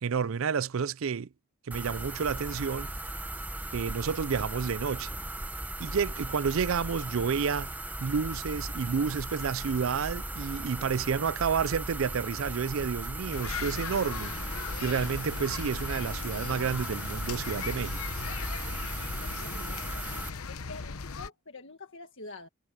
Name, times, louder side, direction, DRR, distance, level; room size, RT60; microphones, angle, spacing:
voice 1, 0.0-1.3 1.6-2.9 3.7-5.1 5.8-18.0, right 6 dB, 60° right, 0.4 m, -30 dB
sound 1, 1.7-20.3, right 1 dB, 5° right, 0.9 m, -37 dB
sound 2, 13.3-21.3, left 5 dB, 75° left, 0.9 m, -38 dB
voice 2, 19.4-20.0 20.4-22.5, left 3 dB, 55° left, 1.7 m, -46 dB
head